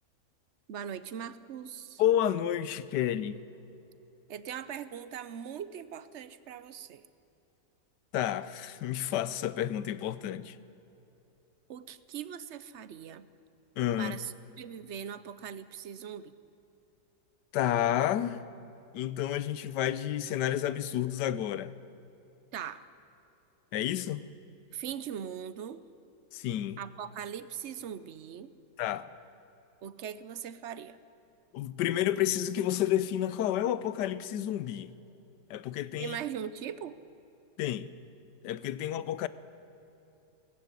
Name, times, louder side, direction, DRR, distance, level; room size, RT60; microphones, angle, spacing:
voice 1, 0.7-2.0 4.3-7.1 11.7-13.3 14.0-16.3 22.5-22.8 24.7-25.8 26.8-28.5 29.8-31.0 36.0-37.0, right 8 dB, 60° right, 0.8 m, -40 dB
voice 2, 2.0-3.4 8.1-10.6 13.8-14.1 17.5-18.4 18.9-21.7 23.7-24.2 26.3-26.8 28.8-29.1 31.5-34.9 35.5-36.2 37.6-37.9 38.4-39.3, left 11 dB, 80° left, 1.3 m, -30 dB
18.5 x 15.0 x 9.7 m
omnidirectional pair, 1.8 m